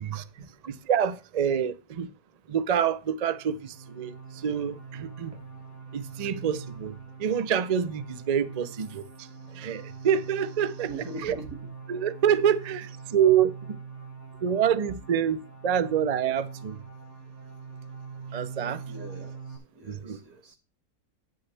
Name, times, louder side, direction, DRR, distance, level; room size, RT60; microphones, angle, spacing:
voice 1, 0.7-2.1 2.5-5.4 5.9-10.9 11.2-11.4 11.9-13.8 14.4-16.8 18.3-18.8 19.8-20.2, right 8 dB, 65° right, 0.4 m, -27 dB
sound 1, 3.3-19.6, right 5 dB, 45° right, 2.3 m, -43 dB
voice 2, 10.9-11.7 14.0-14.1 18.9-20.6, right 2 dB, 85° right, 2.7 m, -42 dB
9.6 x 8.8 x 3.4 m
omnidirectional pair, 1.7 m